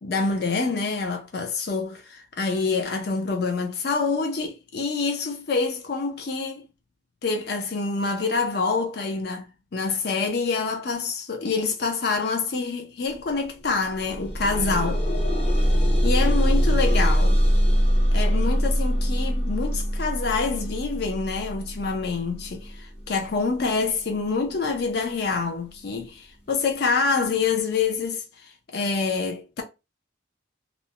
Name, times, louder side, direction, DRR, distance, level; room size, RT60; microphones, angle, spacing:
voice 1, 0.0-6.7 7.2-9.5 9.7-15.0 16.0-17.4 18.1-29.6, left 4 dB, 60° left, 0.5 m, -26 dB
sound 1, 13.1-13.3 13.6-24.6 25.4-25.5 26.0-26.1, equal, 35° left, 0.8 m, -23 dB
2.5 x 2.1 x 2.9 m
head